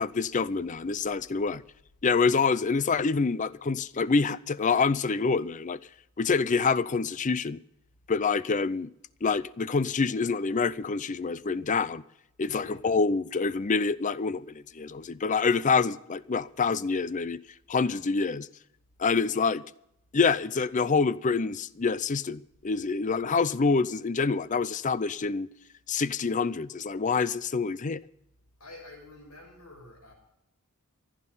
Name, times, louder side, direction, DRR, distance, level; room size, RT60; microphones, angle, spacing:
voice 1, 0.0-1.6 2.0-5.8 6.2-7.6 8.1-8.9 9.2-12.0 12.4-17.4 17.7-18.5 19.0-19.6 20.1-25.5 25.9-28.0, left 4 dB, 35° left, 0.5 m, -26 dB
voice 2, 12.4-12.8 28.6-30.1, left 2 dB, 90° left, 6.3 m, -48 dB
15.0 x 12.0 x 5.6 m
head